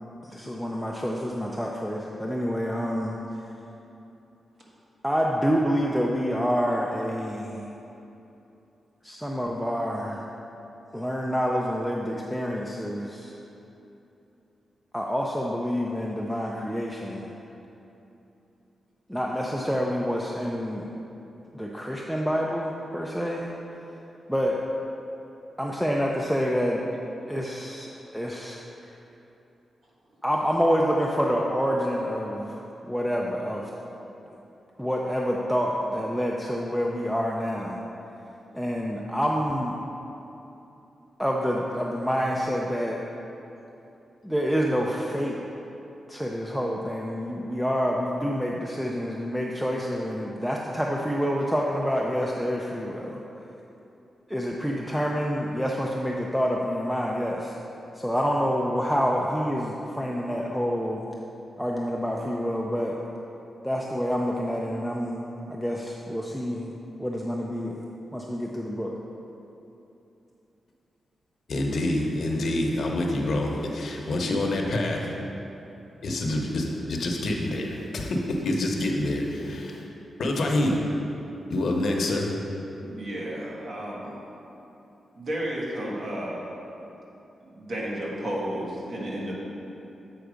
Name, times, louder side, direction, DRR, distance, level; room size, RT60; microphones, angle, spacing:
voice 1, 0.2-3.2 5.0-7.7 9.0-10.3 10.9-13.3 14.9-17.4 19.1-20.9 21.5-23.5 24.3-24.6 25.6-26.8 27.3-28.9 30.2-32.6 32.9-33.7 34.8-37.8 38.5-39.8 41.2-43.0 44.2-45.4 46.1-53.2 54.3-57.6 57.9-61.1 61.6-63.0 63.6-66.7 67.0-67.8 68.1-68.9, equal, ahead, -2 dB, 0.4 m, -27 dB
voice 2, 71.5-75.1 76.0-79.8 80.2-80.8 81.5-82.3, left 1 dB, 60° left, 0 dB, 0.9 m, -27 dB
voice 3, 82.8-84.2 85.1-86.5 87.5-89.3, right 1 dB, 50° right, -5 dB, 1.6 m, -32 dB
8.1 x 4.5 x 5.0 m, 2.9 s
wide cardioid pair, 135°, 0 cm